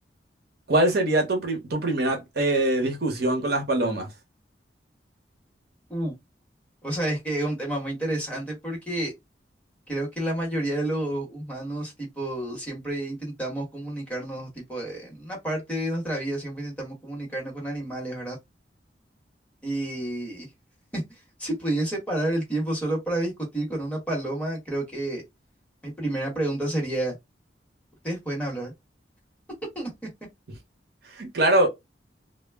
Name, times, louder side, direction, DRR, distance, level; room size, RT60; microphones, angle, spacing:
voice 1, 0.7-4.1 31.1-31.7, right 1 dB, 60° right, 0.8 m, -23 dB
voice 2, 6.8-9.1 9.9-18.4 19.6-20.5 20.9-21.0 21.4-25.2 25.8-27.1 28.0-28.7 29.7-29.9, right 1 dB, 5° left, 1.1 m, -30 dB
2.2 x 2.0 x 3.3 m
head